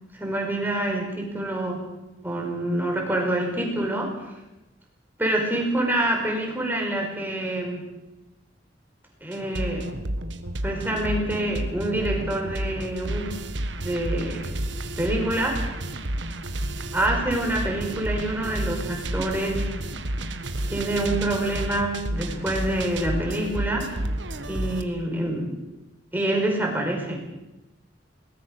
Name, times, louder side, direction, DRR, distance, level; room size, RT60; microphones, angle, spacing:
voice 1, 0.2-1.8 2.2-4.1 5.2-7.8 9.2-9.9 10.6-13.3 13.8-14.6 15.0-15.6 16.9-19.7 20.7-23.9 24.5-25.5 26.1-27.2, right 1 dB, 10° right, 0 dB, 5.5 m, -26 dB
sound 1, 9.3-24.8, right 1 dB, 85° right, 1.6 m, -31 dB
21.5 x 19.5 x 6.7 m, 0.98 s
head